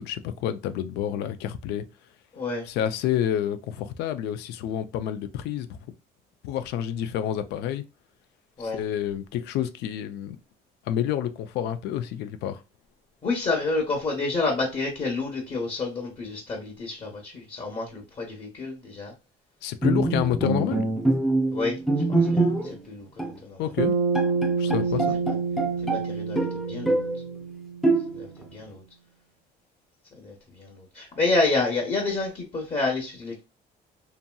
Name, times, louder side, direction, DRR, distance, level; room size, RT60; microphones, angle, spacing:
voice 1, 0.0-1.8 2.7-5.8 6.4-7.8 8.6-10.4 10.9-12.6 19.6-20.8 23.6-23.9 24.6-25.2, left 10 dB, 80° left, 0.4 m, -29 dB
voice 2, 2.3-2.7 8.6-8.8 13.2-19.1 21.5-21.8 22.1-23.6 24.6-24.8 25.8-27.1 28.1-28.8 30.1-33.4, left 3 dB, 35° left, 0.9 m, -29 dB
Bowed string instrument, 19.8-22.9 23.2-23.4 23.8-23.9 24.1-26.1 26.4-27.2 27.8-28.4, right 2 dB, ahead, 0.5 m, -24 dB
Bass guitar, 23.8-28.2, right 4 dB, 80° right, 0.5 m, -28 dB
2.8 x 2.7 x 2.2 m
cardioid pair, 110°, 17 cm